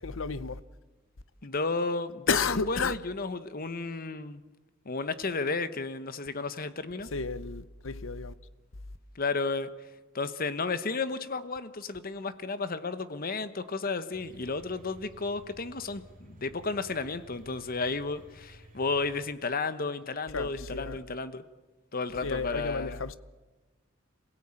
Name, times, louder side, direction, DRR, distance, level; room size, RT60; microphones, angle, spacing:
voice 1, 0.0-0.6 2.3-3.0 7.1-8.3 20.3-21.0 22.2-23.2, left 5 dB, 75° left, 0.9 m, -32 dB
voice 2, 1.4-4.4 4.9-7.1 9.1-9.7 10.1-21.4 21.9-23.0, left 3 dB, 45° left, 1.0 m, -33 dB
sound 1, 14.1-19.3, right 1 dB, 40° right, 2.4 m, -54 dB
27.5 x 17.5 x 8.9 m
head